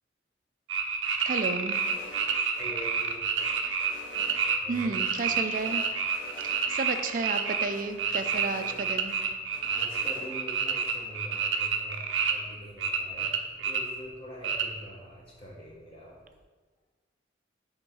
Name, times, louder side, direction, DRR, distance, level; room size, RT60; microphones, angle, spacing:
sound 1, 0.7-7.7 8.0-12.3 12.8-13.8 14.4-14.6, right 6 dB, 85° right, 0.6 m, -28 dB
voice 1, 1.3-1.8 4.7-5.8 6.4-9.1, right 3 dB, 45° right, 8 dB, 0.4 m, -32 dB
sound 2, 1.7-2.6 3.0-4.8 5.2-6.6 6.9-7.0 7.3-9.2 9.5-10.3, left 2 dB, 85° left, 1.2 m, -48 dB
voice 2, 2.6-3.2 4.6-4.9 9.7-16.2, equal, 30° left, -5 dB, 0.8 m, -44 dB
5.3 x 3.7 x 5.5 m, 1.4 s
head